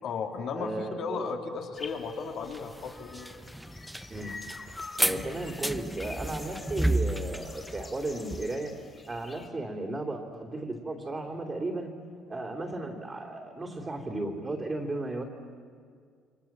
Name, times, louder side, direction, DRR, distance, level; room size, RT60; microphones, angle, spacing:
voice 1, 0.0-3.3, left 5 dB, 55° left, 3 dB, 2.8 m, -35 dB
voice 2, 0.5-1.3 4.1-4.3 5.0-8.7 9.1-11.9 12.3-15.2, right 2 dB, 20° right, -3 dB, 3.0 m, -35 dB
sound 1, 1.8-9.5, left 3 dB, 20° left, 3.1 m, -46 dB
sound 2, 2.5-8.5, right 1 dB, 5° right, 0.7 m, -32 dB
29.5 x 24.5 x 7.4 m, 2.1 s
cardioid pair, 135°, 0 cm